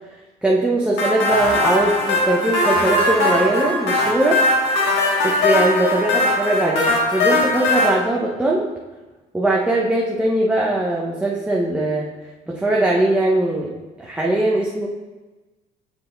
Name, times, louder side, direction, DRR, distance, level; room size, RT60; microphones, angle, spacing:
voice 1, 0.4-4.4 5.2-8.7 9.3-12.1 12.5-13.7 14.0-14.9, right 2 dB, 5° right, -4 dB, 0.7 m, -20 dB
sound 1, 1.0-7.9, left 2 dB, 90° left, 1.6 m, -20 dB
7.1 x 4.7 x 3.9 m, 1.2 s
cardioid pair, 110°, 17 cm